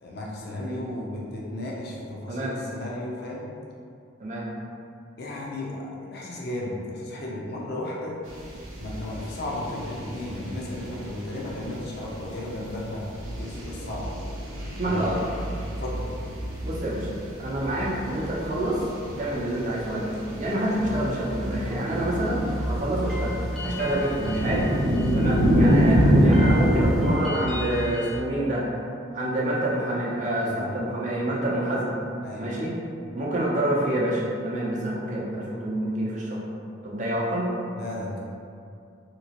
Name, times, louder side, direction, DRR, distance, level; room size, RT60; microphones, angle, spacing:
voice 1, 0.0-3.4 5.2-8.2 8.8-14.1 14.8-15.2 15.8-16.1 25.0-25.2 30.4-30.7 32.2-32.5 37.7-38.2, left 1 dB, 50° left, -4 dB, 0.6 m, -34 dB
sound 1, 8.3-27.1, equal, 80° right, 0.7 m, -27 dB
voice 2, 14.8-15.2 16.6-22.4 22.7-23.4 23.6-24.7 25.1-28.6 29.1-32.0 32.4-32.7 33.1-36.4 36.8-37.5, right 1 dB, 35° right, -5 dB, 0.6 m, -27 dB
sound 2, 20.8-28.2, equal, ahead, 0.3 m, -34 dB
2.9 x 2.9 x 2.8 m, 2.4 s
head